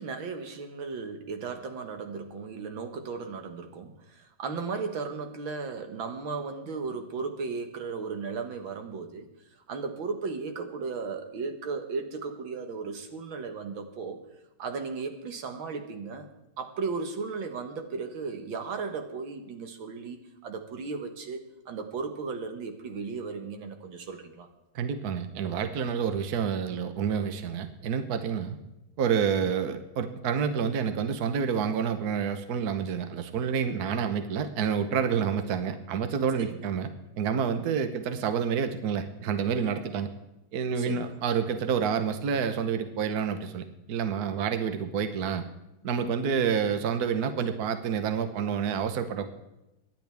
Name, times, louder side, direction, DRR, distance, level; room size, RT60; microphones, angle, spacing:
voice 1, 0.0-9.3 9.7-14.2 14.6-16.3 16.6-20.2 20.4-24.5 36.4-36.7 40.8-41.2, right 4 dB, 85° right, 6 dB, 2.2 m, -35 dB
voice 2, 24.7-28.6 29.0-36.9 37.2-40.1 40.5-45.4 45.8-49.3, right 7 dB, 55° right, 8 dB, 1.4 m, -28 dB
25.5 x 11.0 x 3.5 m, 0.93 s
omnidirectional pair, 2.1 m